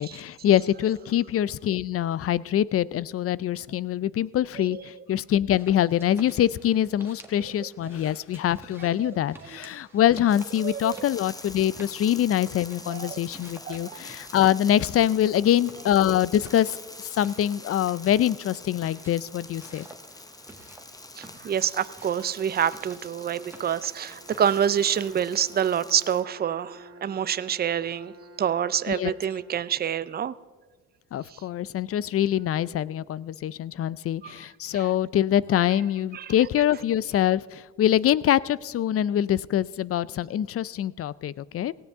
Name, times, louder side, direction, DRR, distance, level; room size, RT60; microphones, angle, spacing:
voice 1, 0.0-19.9 28.9-29.2 31.1-41.7, left 11 dB, 50° left, 20 dB, 0.4 m, -24 dB
sound 1, 5.5-25.0, right 2 dB, 10° right, 1.7 m, -52 dB
sound 2, 10.3-26.2, left 2 dB, 10° left, 0.8 m, -45 dB
voice 2, 10.6-11.1 12.9-13.2 13.7-14.0 21.2-28.1 28.4-30.3 31.3-31.4 34.2-34.4 34.7-34.9 36.1-36.3, right 9 dB, 30° right, 16 dB, 0.5 m, -27 dB
Bowed string instrument, 24.0-30.2, right 2 dB, 60° right, 2.1 m, -50 dB
18.0 x 16.0 x 3.6 m, 1.4 s
cardioid pair, 90°, 30 cm